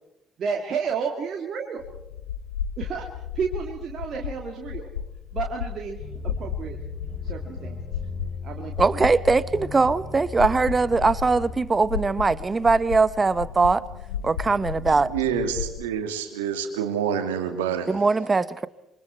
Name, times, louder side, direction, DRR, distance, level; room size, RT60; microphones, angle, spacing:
voice 1, 0.4-1.9 2.8-3.1 3.3-4.9 5.3-6.0 6.4-6.8 7.2-7.8 8.4-9.1, right 6 dB, 55° right, 2.4 m, -31 dB
sound 1, 1.8-15.8, left 8 dB, 85° left, 0.9 m, -34 dB
sound 2, 6.0-11.6, left 2 dB, 20° left, 6.7 m, -38 dB
voice 2, 8.8-13.8 14.2-15.1 17.9-18.7, right 4 dB, 30° right, 1.1 m, -21 dB
voice 3, 15.1-17.9, right 7 dB, 85° right, 2.3 m, -27 dB
27.5 x 24.5 x 4.5 m
hypercardioid pair, 45°, 0 cm